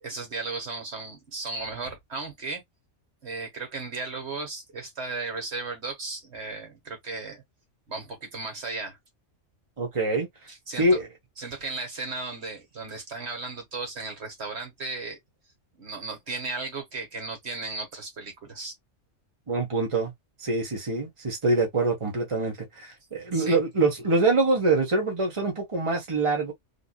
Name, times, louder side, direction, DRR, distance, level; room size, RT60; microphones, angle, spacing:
voice 1, 0.0-2.6 3.2-7.4 7.9-9.0 10.5-11.0 11.4-15.2 15.8-18.7 23.3-23.6, right 3 dB, 60° right, 1.7 m, -35 dB
voice 2, 9.8-10.3 10.8-11.1 19.5-20.1 20.4-26.5, right 2 dB, 25° right, 1.3 m, -25 dB
3.6 x 2.8 x 2.3 m
omnidirectional pair, 1.3 m